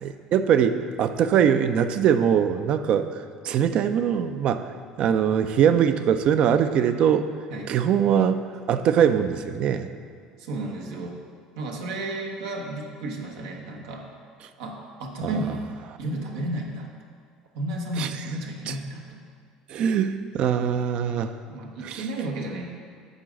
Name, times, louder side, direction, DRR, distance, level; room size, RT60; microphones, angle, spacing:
voice 1, 0.0-4.7 5.0-7.3 7.7-9.9 15.2-15.4 18.0-18.1 18.7-18.8 19.7-21.3 21.8-22.0, right 8 dB, 55° right, 10 dB, 0.5 m, -22 dB
voice 2, 10.4-11.2 11.6-14.1 14.6-15.7 16.0-16.9 17.5-19.2 21.5-22.6, right 1 dB, 85° right, 0 dB, 1.2 m, -32 dB
8.8 x 3.9 x 6.4 m, 2.1 s
supercardioid pair, 100°, 2 cm